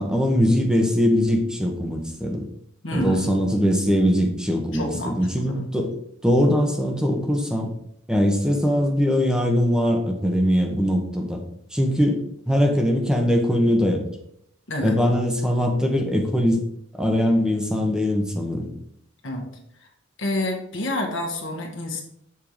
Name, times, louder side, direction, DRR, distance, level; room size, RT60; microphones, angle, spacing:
voice 1, 0.0-2.4 2.9-5.9 6.2-7.7 8.1-11.4 11.7-12.2 12.5-14.0 14.8-16.6 17.0-18.7, equal, 5° right, 2 dB, 1.0 m, -21 dB
voice 2, 2.8-3.3 4.7-5.6 14.7-14.9 19.2-19.5 20.2-22.0, left 1 dB, 65° left, 1 dB, 1.6 m, -28 dB
7.3 x 4.5 x 5.0 m, 0.73 s
head